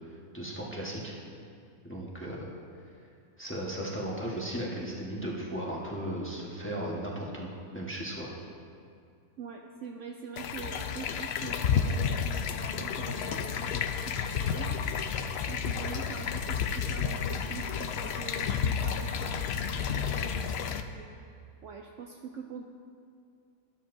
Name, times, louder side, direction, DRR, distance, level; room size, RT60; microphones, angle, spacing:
voice 1, 0.3-1.1 1.8-2.5 3.4-8.3, right 1 dB, 10° left, -4 dB, 1.2 m, -36 dB
voice 2, 9.4-14.7 15.5-21.3 21.6-22.6, right 5 dB, 65° right, 2 dB, 0.8 m, -44 dB
sound 1, 10.4-20.8, left 7 dB, 75° left, 0.5 m, -31 dB
12.5 x 11.5 x 2.7 m, 2.3 s
omnidirectional pair, 1.6 m